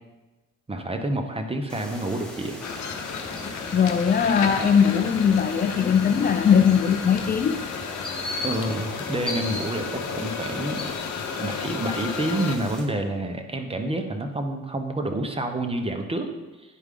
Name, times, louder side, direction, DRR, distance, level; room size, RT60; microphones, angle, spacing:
voice 1, 0.7-2.6 8.4-10.9 11.4-16.3, right 1 dB, 20° right, 5 dB, 0.9 m, -28 dB
sound 1, 1.7-12.8, left 1 dB, 5° left, 1.5 m, -37 dB
sound 2, 2.6-12.6, left 6 dB, 70° left, 0.8 m, -33 dB
voice 2, 3.7-7.6, left 7 dB, 30° left, 7 dB, 0.4 m, -20 dB
10.0 x 4.7 x 3.8 m, 1.2 s
cardioid pair, 90°, 30 cm